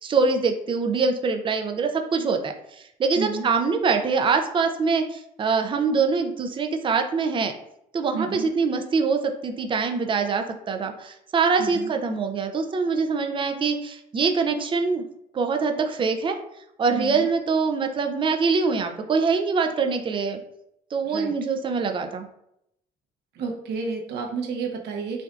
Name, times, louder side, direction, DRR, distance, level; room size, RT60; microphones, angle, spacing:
voice 1, 0.0-2.5 3.0-7.5 7.9-15.1 15.3-16.4 16.8-20.4 20.9-22.2, right 4 dB, 30° right, 5 dB, 0.5 m, -24 dB
voice 2, 3.2-3.5 8.1-8.5 11.6-11.9 16.9-17.3 21.0-21.3 23.3-25.2, right 5 dB, 75° right, 2 dB, 0.9 m, -31 dB
5.7 x 2.6 x 2.4 m, 0.78 s
cardioid pair, 110°, 17 cm